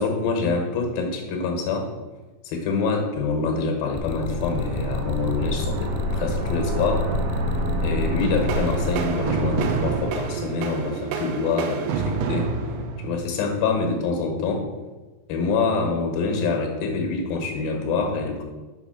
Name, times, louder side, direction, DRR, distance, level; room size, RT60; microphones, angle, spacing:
voice 1, 0.0-1.9 2.4-7.1 7.8-12.5 13.0-14.7 15.3-18.4, left 4 dB, 65° left, 3 dB, 2.8 m, -26 dB
sound 1, 3.9-9.1, left 9 dB, 85° left, 2.8 m, -30 dB
sound 2, 4.1-10.6, right 1 dB, 70° right, 2.8 m, -28 dB
sound 3, 8.2-13.7, right 5 dB, 85° right, 3.0 m, -28 dB
7.0 x 5.7 x 5.7 m, 1.2 s
omnidirectional pair, 5.2 m